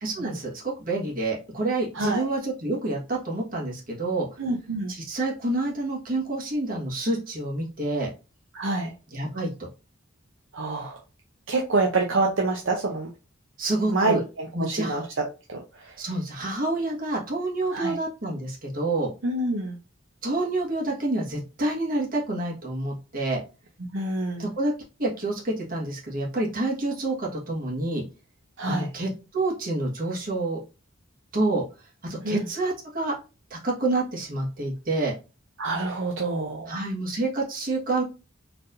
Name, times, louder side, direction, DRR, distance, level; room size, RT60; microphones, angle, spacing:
voice 1, 0.0-4.3 4.9-8.1 9.1-9.7 13.6-14.2 14.5-15.0 16.0-19.1 20.2-23.4 24.4-24.7 25.0-28.0 28.7-30.6 31.3-31.6 32.0-33.1 33.5-35.1 36.7-38.0, right 2 dB, 45° right, -3 dB, 1.5 m, -28 dB
voice 2, 4.4-4.9 8.5-8.9 10.5-11.0 11.5-13.1 13.9-15.0 15.5-15.9 17.7-17.9 19.2-19.8 23.9-24.5 28.6-28.9 32.2-32.4 35.6-36.7, right 2 dB, 65° right, 0 dB, 0.7 m, -27 dB
4.4 x 3.5 x 2.6 m, 0.31 s
head